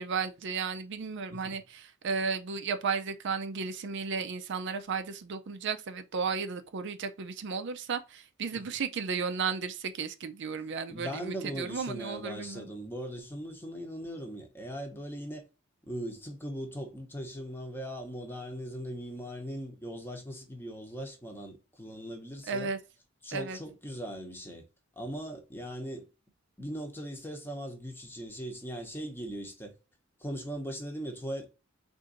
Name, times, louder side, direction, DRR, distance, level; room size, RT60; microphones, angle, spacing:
voice 1, 0.0-12.7 22.5-22.8 23.3-23.6, right 5 dB, 60° right, 0.5 m, -34 dB
voice 2, 10.9-15.4 15.9-22.7 23.2-24.6 25.0-26.0 26.6-29.7 30.2-31.5, equal, 10° left, 0.8 m, -39 dB
3.8 x 2.6 x 3.8 m
head